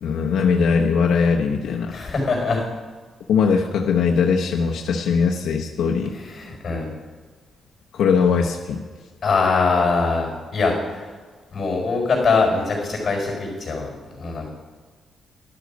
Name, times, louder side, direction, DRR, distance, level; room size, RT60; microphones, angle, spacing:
voice 1, 0.0-2.0 3.3-6.1 7.9-8.8, left 5 dB, 85° left, 0 dB, 0.9 m, -20 dB
voice 2, 1.9-2.6 6.1-6.9 9.2-11.1 11.5-13.9 14.2-14.5, left 4 dB, 35° left, -1 dB, 4.7 m, -22 dB
12.0 x 11.5 x 5.2 m, 1.5 s
wide cardioid pair, 170°, 0 cm